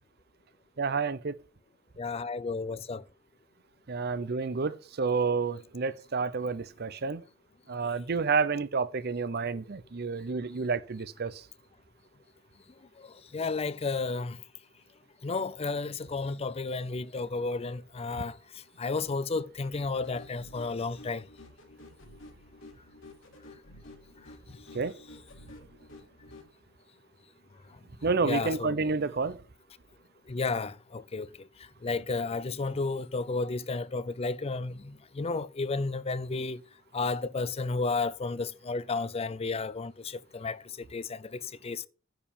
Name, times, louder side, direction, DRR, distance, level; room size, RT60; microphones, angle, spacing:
voice 1, 0.8-1.4 3.9-7.2 7.7-11.4 24.7-24.9 28.0-29.4, right 4 dB, 55° right, 0.7 m, -30 dB
voice 2, 2.0-3.0 13.3-14.4 15.2-18.4 18.8-21.2 28.2-28.8 30.3-31.3 31.8-36.6 36.9-40.6 40.9-41.9, left 3 dB, 30° left, 0.5 m, -32 dB
sound 1, 19.9-26.5, left 1 dB, 90° left, 2.9 m, -51 dB
10.0 x 4.7 x 7.1 m
head